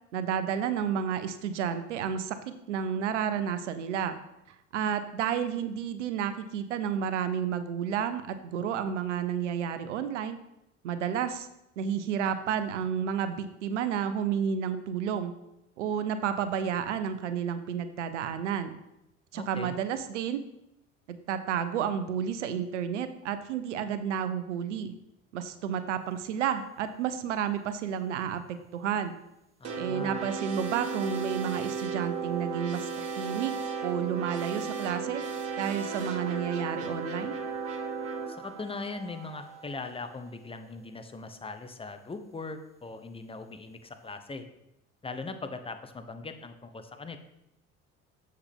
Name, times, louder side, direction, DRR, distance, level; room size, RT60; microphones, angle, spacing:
voice 1, 0.1-4.2 4.7-10.4 10.8-11.5 11.8-15.3 15.8-18.8 19.3-20.4 21.1-24.9 25.3-29.1 29.7-33.5 33.8-35.2 35.6-37.3, right 8 dB, 85° right, 11 dB, 0.7 m, -31 dB
voice 2, 19.3-19.7 29.6-30.2 38.3-44.4 45.0-47.2, left 3 dB, 15° left, 8 dB, 0.9 m, -40 dB
sound 1, 29.6-40.1, right 5 dB, 45° right, 1.9 m, -35 dB
7.1 x 6.6 x 3.5 m, 0.85 s
hypercardioid pair, 60°, 35 cm